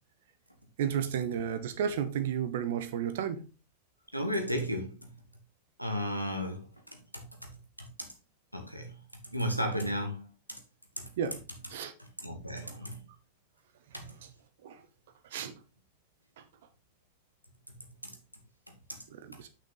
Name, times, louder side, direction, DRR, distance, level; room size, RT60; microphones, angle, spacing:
voice 1, 0.8-3.5 11.2-11.4 11.7-11.9 12.6-12.8 14.0-14.1 14.6-14.8 15.2-15.6 16.4-16.5 19.1-19.5, right 8 dB, 55° right, 0.9 m, -33 dB
voice 2, 4.1-5.2 5.8-8.1 8.5-10.6 11.0-11.1 12.0-13.1 13.9-14.3 17.7-18.2 18.7-19.0 19.3-19.4, equal, 90° right, 1.5 m, -36 dB
6.3 x 5.7 x 4.0 m
figure-of-eight pair, 90°, 0 cm